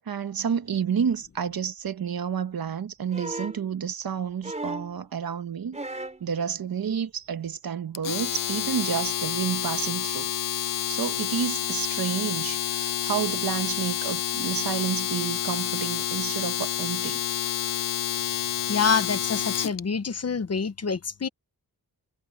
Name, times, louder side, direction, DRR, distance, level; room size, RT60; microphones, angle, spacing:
voice 1, 0.1-5.8 6.2-10.3 10.9-17.2, right 7 dB, 65° right, 1.3 m, -30 dB
sound 1, 3.1-3.6 4.4-5.0 5.7-6.2 7.5-7.6, right 2 dB, 20° right, 3.5 m, -35 dB
Domestic sounds home sounds, 7.9-19.8, left 11 dB, 60° left, 0.5 m, -29 dB
voice 2, 18.7-21.3, left 5 dB, 40° left, 1.0 m, -26 dB
wide cardioid pair, 175°, 38 cm